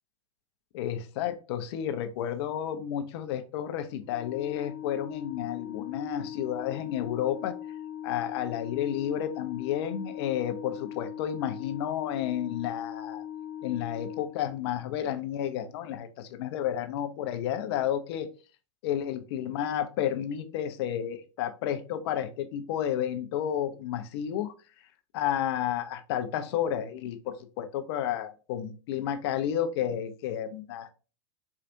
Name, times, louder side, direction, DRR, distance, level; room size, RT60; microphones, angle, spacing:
voice 1, 0.7-7.5 8.0-13.2 13.6-18.3 18.8-24.5 25.1-30.9, left 10 dB, 55° left, 9 dB, 0.6 m, -31 dB
Organ, 4.0-14.9, left 10 dB, 5° left, 1.2 m, -40 dB
4.5 x 2.4 x 2.6 m, 0.34 s
hypercardioid pair, 110°, 16 cm